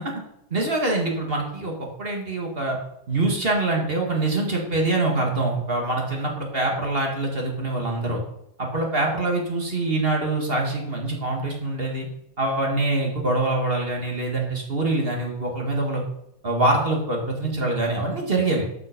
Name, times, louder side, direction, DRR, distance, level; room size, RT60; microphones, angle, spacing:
voice 1, 0.5-2.8 3.1-8.2 8.6-12.1 12.4-16.0 16.4-18.6, right 2 dB, 30° right, 0 dB, 1.1 m, -24 dB
13.0 x 5.6 x 5.1 m, 0.82 s
omnidirectional pair, 3.8 m